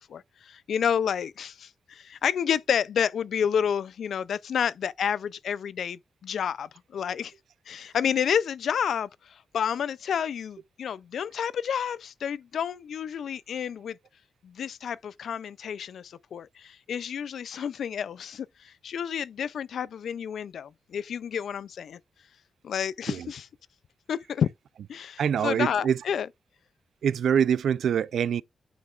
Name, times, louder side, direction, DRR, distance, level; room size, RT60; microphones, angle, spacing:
voice 1, 0.1-7.3 7.7-14.0 14.4-22.0 22.6-23.5 24.1-24.5 24.9-26.3, left 8 dB, 70° left, 0.4 m, -30 dB
voice 2, 25.2-26.0 27.0-28.4, right 8 dB, 75° right, 0.4 m, -24 dB
9.3 x 5.9 x 2.4 m
wide cardioid pair, 175°, 0 cm